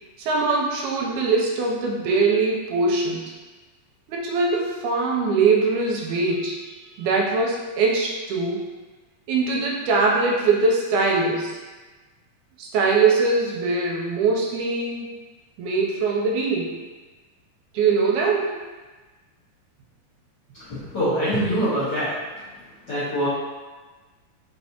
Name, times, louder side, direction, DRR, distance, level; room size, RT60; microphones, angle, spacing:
voice 1, 0.2-3.2 4.1-6.6 7.0-8.7 9.3-11.6 12.6-15.1 15.6-16.7 17.7-18.6, right 4 dB, 85° right, -2 dB, 2.0 m, -22 dB
voice 2, 20.5-22.2 22.9-23.3, equal, 45° left, -14 dB, 1.5 m, -24 dB
4.8 x 3.2 x 2.8 m, 1.3 s
omnidirectional pair, 3.6 m